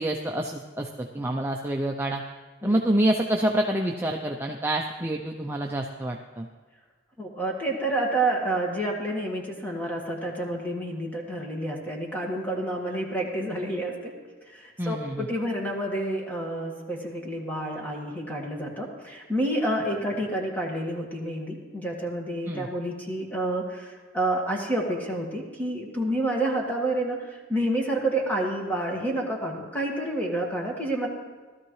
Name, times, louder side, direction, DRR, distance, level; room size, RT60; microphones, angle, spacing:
voice 1, 0.0-2.2 2.6-6.5 14.8-15.3 19.9-20.0 22.5-22.7, right 1 dB, 10° right, 1 dB, 0.5 m, -27 dB
voice 2, 7.2-14.1 14.5-31.1, right 1 dB, 10° left, -1 dB, 1.7 m, -29 dB
16.5 x 13.0 x 3.2 m, 1.4 s
head